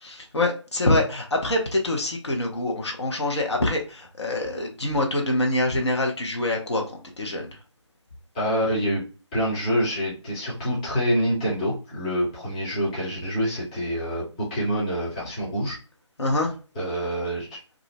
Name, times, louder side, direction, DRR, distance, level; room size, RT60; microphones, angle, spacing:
voice 1, 0.0-7.5 16.2-16.5, left 2 dB, 65° left, 1 dB, 0.9 m, -25 dB
voice 2, 8.3-9.0 9.3-15.8 16.8-17.6, equal, 15° left, -7 dB, 0.6 m, -26 dB
2.5 x 2.1 x 3.0 m, 0.35 s
figure-of-eight pair, 155°, 16 cm